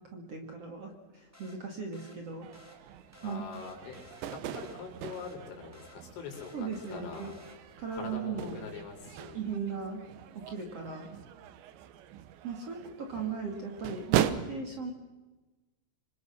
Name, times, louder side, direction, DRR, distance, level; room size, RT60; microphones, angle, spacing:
voice 1, 0.1-2.5 3.2-3.4 6.5-7.3 7.8-8.6 9.3-10.0 10.3-11.1 12.4-14.9, right 5 dB, 40° right, 2 dB, 2.5 m, -37 dB
sound 1, 1.3-7.9, left 1 dB, 5° right, 2.8 m, -57 dB
sound 2, 2.4-14.3, right 11 dB, 75° right, 3.2 m, -39 dB
voice 2, 3.2-7.3 7.9-9.4, left 5 dB, 85° left, 1 dB, 6.7 m, -43 dB
26.0 x 25.5 x 6.5 m, 1.2 s
omnidirectional pair, 5.4 m